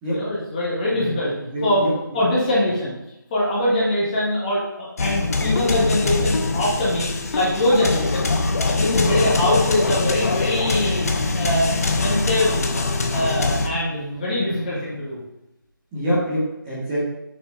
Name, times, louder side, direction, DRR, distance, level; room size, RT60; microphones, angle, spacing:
voice 1, 0.1-1.3 1.6-2.9 3.3-8.3 8.6-12.6 13.1-15.2, left 1 dB, 20° left, -7 dB, 2.0 m, -23 dB
voice 2, 0.9-2.2 15.9-17.0, equal, 10° right, -11 dB, 1.6 m, -26 dB
sound 1, 5.0-13.7, left 3 dB, 45° left, 0.8 m, -23 dB
sound 2, 5.4-11.1, left 4 dB, 65° left, 0.4 m, -29 dB
7.8 x 6.5 x 2.6 m, 0.87 s
figure-of-eight pair, 160°, 11 cm